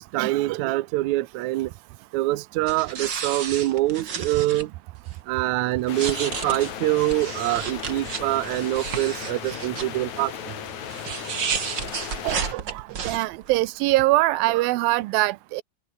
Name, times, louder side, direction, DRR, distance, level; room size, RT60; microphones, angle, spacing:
voice 1, 0.0-1.7 2.1-4.7 5.3-10.3 12.2-12.8, right 17 dB, 70° right, 1.9 m, -25 dB
sound 1, 2.7-4.7 5.1-5.2 5.8-9.8 10.9-13.6, right 7 dB, 40° right, 2.0 m, -32 dB
sound 2, 5.9-12.5, left 9 dB, 60° left, 3.2 m, -36 dB
voice 2, 13.0-15.6, right 18 dB, 90° right, 2.6 m, -22 dB
open air
omnidirectional pair, 4.1 m